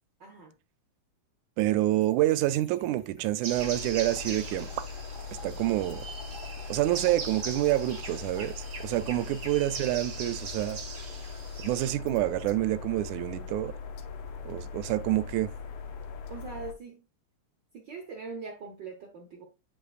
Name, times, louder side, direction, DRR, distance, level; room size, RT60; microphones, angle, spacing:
voice 1, 0.2-0.5 9.0-9.4 16.3-17.0 17.7-19.4, right 4 dB, 70° right, 1.1 m, -42 dB
voice 2, 1.6-4.8 5.4-6.1 6.7-10.8 11.6-13.7 14.5-15.5, right 15 dB, 85° right, 2.0 m, -27 dB
Trickle dribble / Fill (with liquid), 1.9-9.3, left 1 dB, 15° left, 1.1 m, -53 dB
sound 1, 3.4-11.9, right 5 dB, 45° right, 1.5 m, -41 dB
sound 2, 3.5-16.7, left 5 dB, 75° left, 1.2 m, -40 dB
8.6 x 5.1 x 2.4 m
omnidirectional pair, 3.4 m